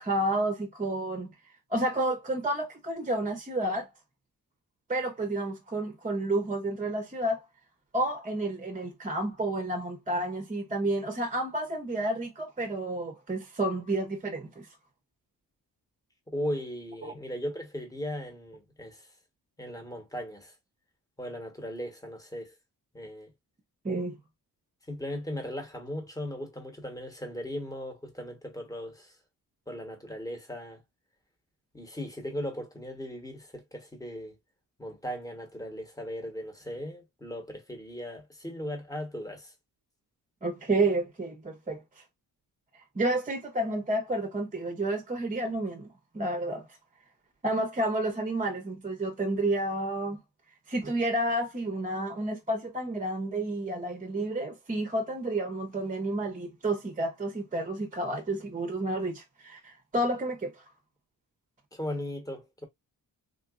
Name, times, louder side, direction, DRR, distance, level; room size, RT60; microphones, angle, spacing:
voice 1, 0.0-1.3 1.7-3.9 4.9-7.4 7.9-14.7 17.0-17.1 23.8-24.2 40.4-41.8 43.0-45.9 46.1-46.7 47.4-50.2 50.7-60.5, right 1 dB, 20° right, 0.7 m, -30 dB
voice 2, 16.3-19.1 19.6-20.5 21.2-22.5 22.9-23.3 24.9-29.1 29.7-30.8 31.7-34.3 34.8-39.5 61.7-62.7, equal, 10° left, 1.0 m, -37 dB
3.7 x 2.6 x 2.3 m
wide cardioid pair, 115°, 38 cm